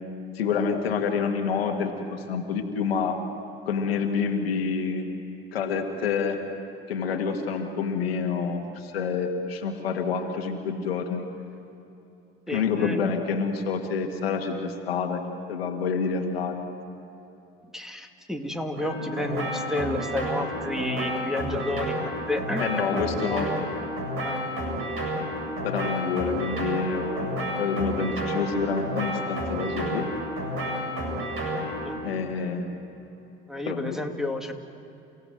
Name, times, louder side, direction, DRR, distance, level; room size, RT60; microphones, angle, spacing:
voice 1, 0.3-3.2 3.7-5.1 5.5-6.4 6.9-11.2 12.5-15.2 15.5-16.6 22.6-23.5 25.6-27.3 27.6-30.1 32.0-32.6 33.7-34.0, left 5 dB, 85° left, 4 dB, 2.0 m, -27 dB
voice 2, 12.5-13.0 17.7-23.8 24.2-24.5 31.8-32.1 33.5-34.5, left 1 dB, ahead, 5 dB, 2.2 m, -31 dB
sound 1, 18.8-31.9, equal, 45° right, 7.9 m, -31 dB
29.5 x 16.5 x 7.8 m, 2.9 s
hypercardioid pair, 65°, 30 cm